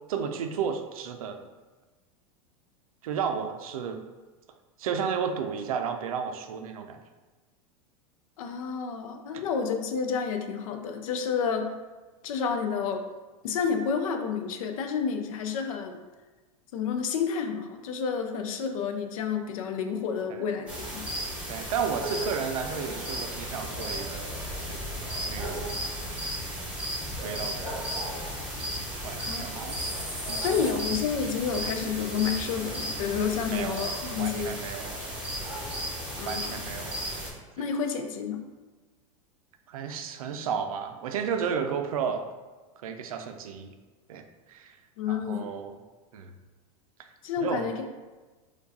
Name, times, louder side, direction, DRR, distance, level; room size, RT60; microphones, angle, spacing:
voice 1, 0.1-1.5 3.0-4.0 4.8-7.0 9.3-9.4 20.3-20.4 21.5-24.4 24.7-25.0 25.3-25.8 27.2-27.9 29.0-29.8 30.3-30.9 33.5-35.0 36.3-37.0 37.6-37.7 39.7-42.3 42.8-43.7 44.1-44.8 45.1-45.8 46.1-46.3 47.4-47.7, right 7 dB, 85° right, 6 dB, 0.4 m, -33 dB
voice 2, 8.4-11.7 12.2-13.0 13.4-16.0 16.7-21.1 29.2-29.8 30.4-34.6 36.2-36.6 37.6-38.4 45.0-45.5 47.2-48.0, left 6 dB, 75° left, 6 dB, 0.5 m, -30 dB
sound 1, 20.7-37.3, equal, 5° right, 1.0 m, -34 dB
4.5 x 2.3 x 2.6 m, 1.3 s
hypercardioid pair, 115°, 18 cm